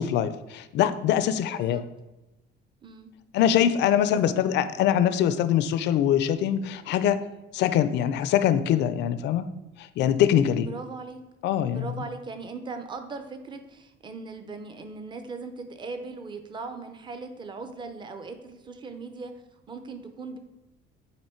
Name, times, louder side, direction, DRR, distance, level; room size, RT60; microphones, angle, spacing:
voice 1, 0.0-1.8 3.3-7.2 7.5-9.5 9.8-10.7 11.4-11.9, left 10 dB, 55° left, 12 dB, 0.4 m, -23 dB
voice 2, 1.5-1.8 2.8-3.1 4.1-4.7 10.7-11.2 11.7-19.3 19.7-20.4, right 4 dB, 20° right, 7 dB, 0.5 m, -39 dB
8.7 x 3.0 x 4.4 m, 0.99 s
cardioid pair, 165°, 21 cm